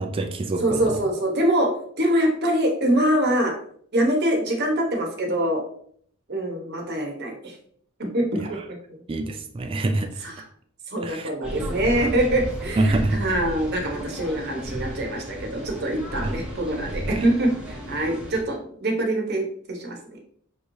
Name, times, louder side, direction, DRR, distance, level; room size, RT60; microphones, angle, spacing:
voice 1, 0.0-1.0 8.5-8.6 9.1-10.2 11.0-11.3 12.8-13.2 16.2-16.3 17.1-17.3, right 2 dB, 25° right, 4 dB, 0.3 m, -26 dB
voice 2, 0.6-3.5 3.9-5.6 6.3-7.6 8.0-9.0 10.2-10.3 10.9-20.2, right 1 dB, 50° right, 1 dB, 1.0 m, -24 dB
sound 1, 11.4-18.4, equal, 5° right, 0.8 m, -34 dB
6.0 x 3.1 x 2.6 m, 0.62 s
head